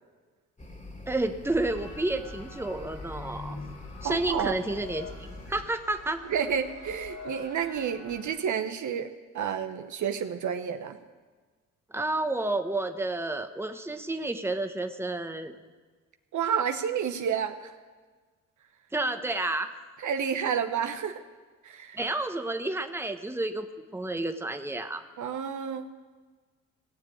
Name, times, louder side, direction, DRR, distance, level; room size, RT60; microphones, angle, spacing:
sound 1, 0.6-5.6, left 2 dB, 20° left, 2.4 m, -44 dB
voice 1, 1.1-3.6 4.0-6.4 11.9-15.5 18.9-19.7 21.9-25.0, right 2 dB, 5° right, 7 dB, 1.3 m, -30 dB
sound 2, 1.7-8.3, left 3 dB, 70° left, 3.0 m, -45 dB
voice 2, 4.0-4.6 6.3-11.0 16.3-17.7 20.0-21.2 21.6-22.0 25.2-25.9, right 7 dB, 55° right, 8 dB, 1.1 m, -30 dB
18.0 x 7.5 x 8.8 m, 1.4 s
hypercardioid pair, 55°, 35 cm